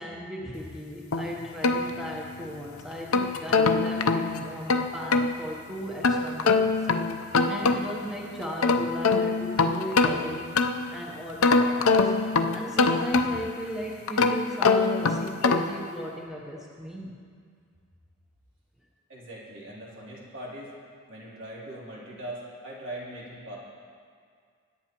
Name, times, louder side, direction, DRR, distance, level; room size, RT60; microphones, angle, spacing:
voice 1, 0.0-6.9 7.5-10.5 10.9-12.1 12.5-17.2, equal, ahead, -2 dB, 0.8 m, -36 dB
sound 1, 1.1-2.5 2.9-5.3 6.0-8.1 8.4-11.0 11.4-13.6 14.1-15.8, left 4 dB, 75° left, 0.6 m, -24 dB
voice 2, 19.1-20.7 21.1-23.6, right 1 dB, 60° right, -6 dB, 3.1 m, -40 dB
21.5 x 10.0 x 3.0 m, 2.2 s
head